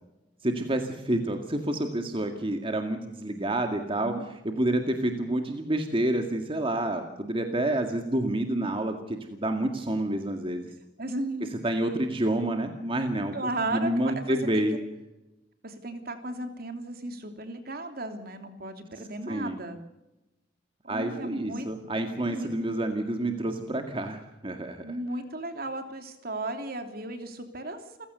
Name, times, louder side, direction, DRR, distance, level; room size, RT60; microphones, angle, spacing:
voice 1, 0.4-4.1 4.4-10.7 11.6-14.8 19.3-19.6 20.9-24.9, right 1 dB, 30° right, 5 dB, 2.1 m, -28 dB
voice 2, 11.0-11.5 13.3-14.6 15.6-19.8 20.8-21.7 22.2-22.5 24.8-28.1, right 2 dB, 55° right, 6 dB, 3.1 m, -35 dB
29.5 x 16.0 x 6.9 m, 0.98 s
head